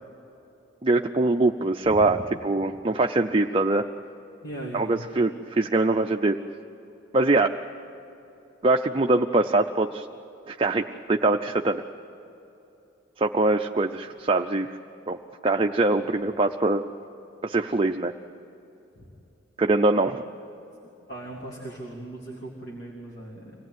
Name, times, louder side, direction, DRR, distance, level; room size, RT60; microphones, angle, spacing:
voice 1, 0.8-2.2 2.4-3.8 4.7-6.4 7.1-7.5 8.6-10.1 10.5-11.8 13.2-14.7 15.1-15.2 15.4-16.8 17.4-18.1 19.6-20.3, right 2 dB, 30° right, 4 dB, 0.6 m, -23 dB
voice 2, 4.4-5.1 19.0-19.1 21.1-23.5, right 1 dB, 55° left, -2 dB, 2.9 m, -38 dB
25.5 x 18.0 x 9.3 m, 2.8 s
head